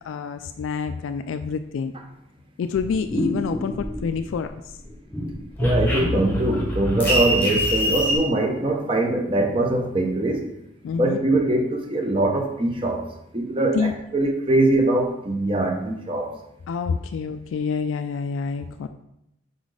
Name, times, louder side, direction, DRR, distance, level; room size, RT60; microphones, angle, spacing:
voice 1, 0.0-1.9 2.6-4.8 10.8-11.2 13.7-13.9 16.7-18.9, left 5 dB, 85° left, 9 dB, 0.3 m, -27 dB
sound 1, 2.7-4.4 4.8-8.2, equal, 10° left, 1.1 m, -24 dB
voice 2, 5.6-10.5 10.9-13.1 13.3-16.4, right 2 dB, 25° right, 2 dB, 0.8 m, -22 dB
5.2 x 4.1 x 4.7 m, 0.82 s
head